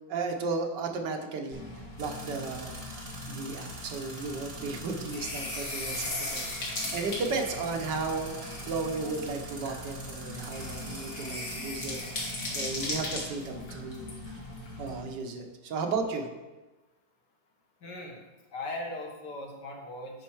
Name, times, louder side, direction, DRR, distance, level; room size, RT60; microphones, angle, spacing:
voice 1, 0.1-2.7 3.3-14.4 14.8-16.3, right 4 dB, 70° right, 4 dB, 1.5 m, -34 dB
sound 1, 1.5-15.0, left 2 dB, 50° left, 2.0 m, -38 dB
sound 2, 2.0-13.4, right 2 dB, 35° right, 1.7 m, -46 dB
voice 2, 17.8-18.3 18.5-20.2, left 2 dB, 65° left, 0 dB, 1.9 m, -39 dB
10.0 x 5.3 x 4.6 m, 1.2 s
omnidirectional pair, 2.0 m